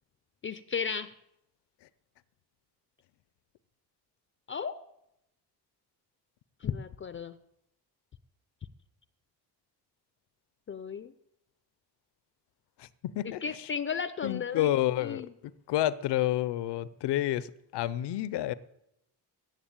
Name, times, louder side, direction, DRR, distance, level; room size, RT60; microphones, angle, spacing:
voice 1, 0.4-1.1 4.5-4.8 6.6-7.4 10.7-11.1 13.4-14.7 15.0-15.3, left 6 dB, 30° left, 0.4 m, -34 dB
voice 2, 14.2-15.3 15.7-18.5, left 13 dB, 75° left, 0.7 m, -29 dB
14.5 x 7.4 x 8.8 m
cardioid pair, 155°, 41 cm